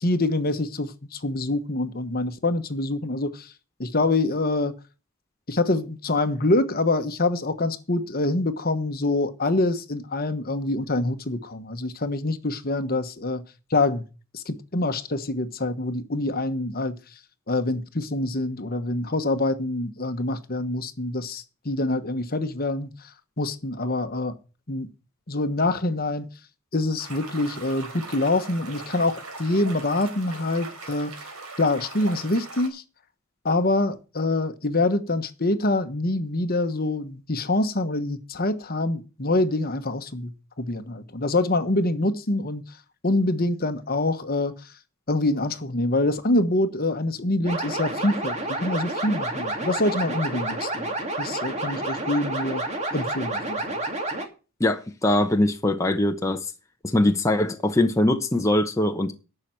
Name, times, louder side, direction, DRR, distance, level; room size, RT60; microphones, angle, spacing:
voice 1, 0.0-3.5 3.8-4.7 5.5-13.4 13.7-14.0 14.3-17.0 17.5-22.9 23.4-24.4 24.7-24.9 25.3-26.3 26.7-31.1 31.6-32.8 33.4-40.3 40.6-42.6 43.0-44.5 45.1-52.6 52.9-53.8, left 2 dB, 45° left, 1.2 m, -25 dB
sound 1, 27.0-32.7, right 3 dB, 85° right, 4.3 m, -40 dB
sound 2, 47.4-54.3, right 2 dB, 30° right, 2.7 m, -29 dB
voice 2, 54.6-56.5 56.8-59.1, left 1 dB, 15° left, 0.9 m, -22 dB
11.5 x 6.9 x 7.6 m
head